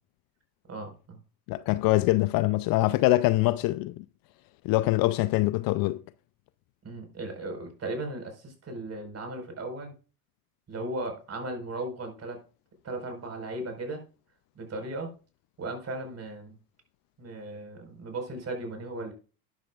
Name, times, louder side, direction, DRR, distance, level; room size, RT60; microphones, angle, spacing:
voice 1, 0.7-1.2 6.8-9.9 10.7-12.4 12.8-14.0 14.5-15.1 15.6-16.6 17.2-19.1, right 2 dB, 30° right, 4.7 m, -36 dB
voice 2, 1.5-4.0 4.6-6.0, left 18 dB, 50° left, 0.5 m, -24 dB
12.5 x 10.5 x 2.4 m
hypercardioid pair, 85°, 47 cm